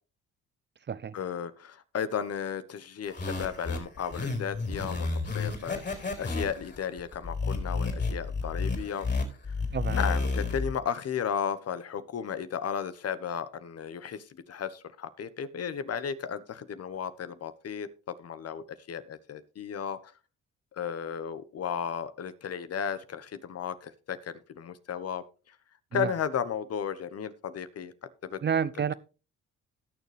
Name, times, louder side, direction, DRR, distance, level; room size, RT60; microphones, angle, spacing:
voice 1, 1.1-9.1 9.9-20.1 20.7-25.5 25.9-28.4, left 7 dB, 55° left, 1.2 m, -34 dB
sound 1, 3.1-10.7, left 3 dB, 35° left, 4.6 m, -31 dB
voice 2, 28.4-28.9, right 7 dB, 35° right, 0.7 m, -29 dB
18.0 x 6.8 x 3.4 m
cardioid pair, 90°, 30 cm